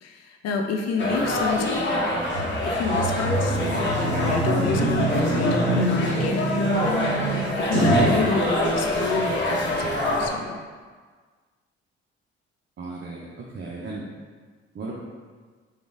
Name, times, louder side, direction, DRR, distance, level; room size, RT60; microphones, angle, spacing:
voice 1, 0.0-2.0 2.4-3.6 4.0-10.6, left 4 dB, 50° left, 3 dB, 0.6 m, -29 dB
sound 1, 1.0-10.3, left 1 dB, 35° left, 1.1 m, -25 dB
sound 2, 2.3-8.2, right 1 dB, 85° right, 0.7 m, -25 dB
voice 2, 12.8-14.1 14.7-14.9, right 3 dB, 35° right, -3 dB, 0.7 m, -35 dB
4.9 x 2.5 x 3.5 m, 1.5 s
figure-of-eight pair, 45°, 33 cm